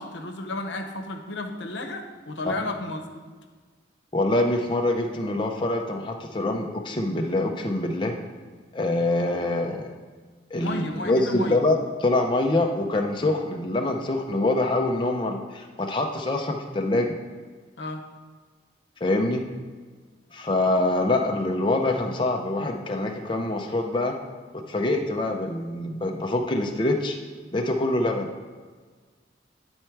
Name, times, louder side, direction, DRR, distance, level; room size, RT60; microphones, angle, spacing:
voice 1, 0.0-3.0 10.6-11.6 17.8-18.0, left 2 dB, 80° left, 4 dB, 0.8 m, -32 dB
voice 2, 4.1-8.1 8.7-9.9 10.5-17.1 19.0-19.5 20.3-24.1 24.7-27.2 27.5-28.3, left 2 dB, 25° left, 2 dB, 0.5 m, -25 dB
9.8 x 4.4 x 4.6 m, 1.5 s
head